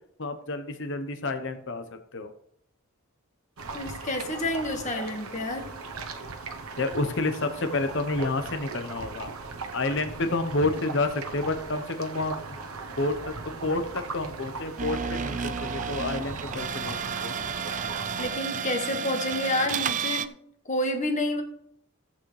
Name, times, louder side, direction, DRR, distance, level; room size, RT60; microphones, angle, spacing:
voice 1, 0.2-1.8 2.1-2.3 6.8-9.3 9.7-12.4 13.0-13.3 13.6-17.3, left 2 dB, 60° left, 7 dB, 1.0 m, -29 dB
sound 1, 3.6-18.4, right 3 dB, 85° right, 1.0 m, -39 dB
voice 2, 3.7-5.7 18.2-20.3 20.6-21.4, left 1 dB, 35° left, 4 dB, 1.6 m, -29 dB
sound 2, 14.8-20.3, right 7 dB, 35° right, 0.4 m, -32 dB
15.5 x 8.4 x 3.3 m, 0.71 s
head